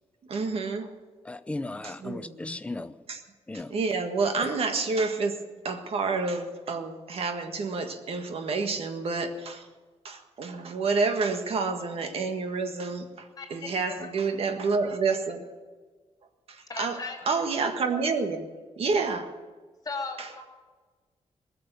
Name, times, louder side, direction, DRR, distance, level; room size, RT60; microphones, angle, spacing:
voice 1, 0.3-0.9 1.8-2.3 3.1-3.2 3.5-5.4 5.6-9.7 10.0-15.4 16.5-17.0 17.3-18.5 18.8-19.3 20.2-20.3, right 4 dB, 60° right, 6 dB, 1.7 m, -29 dB
voice 2, 1.2-2.9 3.5-3.7 4.4-4.5, left 2 dB, 10° left, 11 dB, 0.6 m, -36 dB
voice 3, 13.4-14.1 16.7-17.4 19.8-20.4, left 4 dB, 35° left, 3 dB, 2.5 m, -37 dB
20.5 x 6.9 x 9.4 m, 1.4 s
wide cardioid pair, 140°, 11 cm